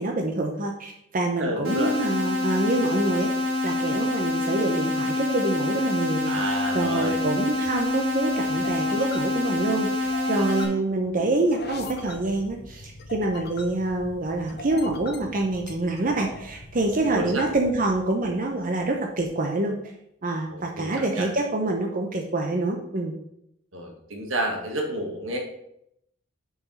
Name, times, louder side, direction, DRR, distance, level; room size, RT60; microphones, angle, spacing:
voice 1, 0.0-3.3 3.6-19.8 20.2-23.1, right 2 dB, 40° right, 2 dB, 0.8 m, -26 dB
voice 2, 1.4-1.9 6.3-7.2 17.0-17.5 20.5-21.3 23.7-25.4, right 1 dB, 70° right, 1 dB, 1.8 m, -30 dB
sound 1, 1.6-10.6, left 2 dB, 85° right, 2.0 m, -26 dB
sound 2, 6.3-19.0, left 2 dB, 50° left, 1.0 m, -42 dB
6.9 x 4.9 x 5.6 m, 0.78 s
head